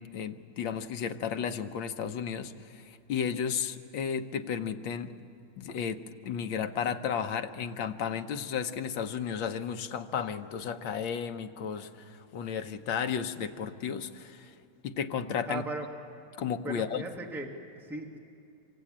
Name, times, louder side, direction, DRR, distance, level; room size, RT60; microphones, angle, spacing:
voice 1, 0.0-5.1 5.6-14.6 14.8-15.6 16.4-17.0, left 7 dB, 75° left, 7 dB, 1.7 m, -33 dB
voice 2, 15.5-15.9 16.6-17.5 17.8-18.2, right 2 dB, ahead, 1 dB, 1.6 m, -37 dB
27.0 x 24.5 x 8.7 m, 2.5 s
omnidirectional pair, 2.2 m